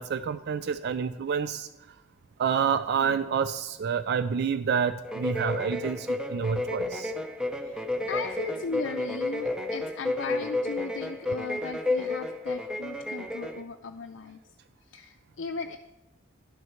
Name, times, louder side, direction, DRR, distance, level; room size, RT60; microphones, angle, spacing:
voice 1, 0.0-1.7 2.4-7.1 11.3-11.4 13.4-13.5, right 7 dB, 55° right, 13 dB, 0.3 m, -28 dB
sound 1, 5.0-13.6, left 2 dB, 5° right, 0.6 m, -31 dB
voice 2, 7.6-14.4 14.9-15.8, left 4 dB, 70° left, 5 dB, 0.5 m, -37 dB
11.5 x 6.3 x 4.4 m, 1.0 s
head